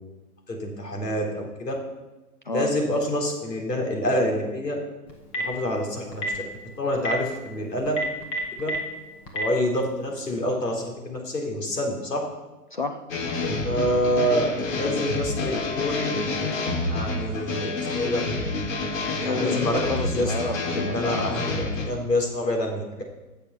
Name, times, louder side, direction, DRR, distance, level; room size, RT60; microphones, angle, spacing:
voice 1, 0.5-1.7 2.5-4.8 5.4-6.2 6.8-7.9 8.6-8.7 9.3-12.2 13.6-16.2 16.9-18.2 19.2-19.8 20.1-20.3 20.6-22.8, equal, 90° left, 1 dB, 3.9 m, -27 dB
Telephone, 5.1-5.6 6.1-6.4 6.9-7.1 7.9-8.8 9.3-9.4, right 1 dB, 10° left, 1.0 m, -28 dB
voice 2, 12.7-13.0 19.2-21.3, left 4 dB, 35° left, 6 dB, 0.4 m, -31 dB
sound 1, 13.1-21.8, left 3 dB, 55° left, 4.6 m, -28 dB
15.0 x 6.9 x 5.7 m, 1.1 s
hypercardioid pair, 150°, 48 cm